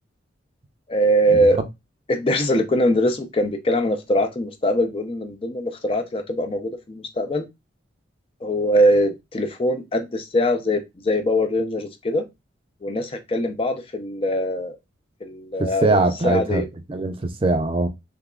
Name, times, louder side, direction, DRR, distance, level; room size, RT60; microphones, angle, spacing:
voice 1, 0.9-1.6 2.1-7.5 8.4-12.2 12.8-14.8 15.2-16.7, equal, 30° left, 0.4 m, -22 dB
voice 2, 15.6-17.9, right 2 dB, 30° right, 0.5 m, -22 dB
3.5 x 2.8 x 2.3 m
head